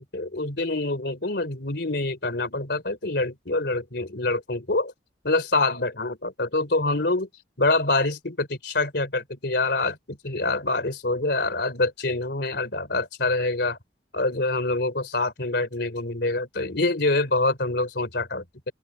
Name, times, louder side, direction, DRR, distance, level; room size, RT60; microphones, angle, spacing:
voice 1, 0.0-4.9 5.2-7.3 7.6-13.8 14.1-18.7, left 2 dB, 60° left, 3.6 m, -26 dB
open air
head